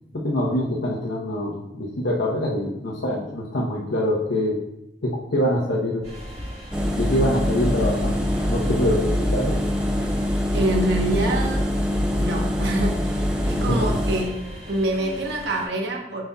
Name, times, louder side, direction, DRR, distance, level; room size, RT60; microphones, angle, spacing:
voice 1, 0.1-4.6 5.0-6.0 6.9-9.6 13.5-13.9, left 1 dB, 85° left, -3 dB, 0.9 m, -24 dB
sound 1, 6.0-15.7, equal, 35° right, 1.5 m, -38 dB
Engine, 6.7-14.2, left 1 dB, 5° right, 0.6 m, -24 dB
voice 2, 10.5-11.7 12.2-14.4 14.7-16.2, right 1 dB, 65° right, 1 dB, 1.0 m, -26 dB
7.6 x 5.5 x 2.3 m, 0.85 s
head